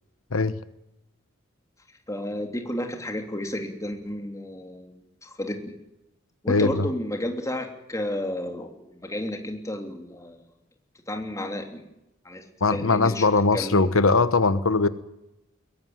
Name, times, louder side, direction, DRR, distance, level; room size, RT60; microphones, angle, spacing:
voice 1, 2.1-5.7 6.4-10.4 11.1-11.8 12.2-12.4 12.7-13.3 13.5-13.9, left 1 dB, 15° left, 4 dB, 3.1 m, -32 dB
voice 2, 6.5-6.9 12.6-14.9, left 3 dB, 90° left, 13 dB, 1.0 m, -21 dB
22.0 x 17.0 x 9.4 m, 0.89 s
head